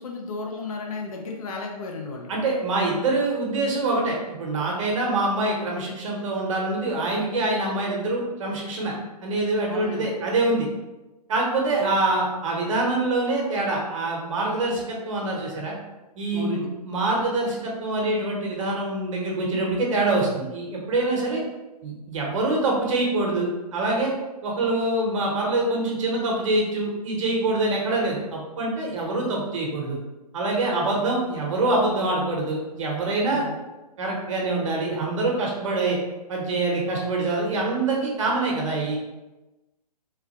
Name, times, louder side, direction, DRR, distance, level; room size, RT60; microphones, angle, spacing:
voice 1, 0.0-2.3 9.7-10.1 11.8-11.9 16.3-16.7 30.7-30.8 33.3-33.6, left 3 dB, 60° left, 1 dB, 0.6 m, -34 dB
voice 2, 2.3-8.9 9.2-10.7 11.3-15.7 16.2-21.4 21.8-24.1 24.4-30.0 30.3-33.4 34.0-36.0 36.3-39.0, right 2 dB, 50° right, -1 dB, 0.8 m, -25 dB
3.1 x 2.4 x 2.8 m, 1.1 s
figure-of-eight pair, 130°, 21 cm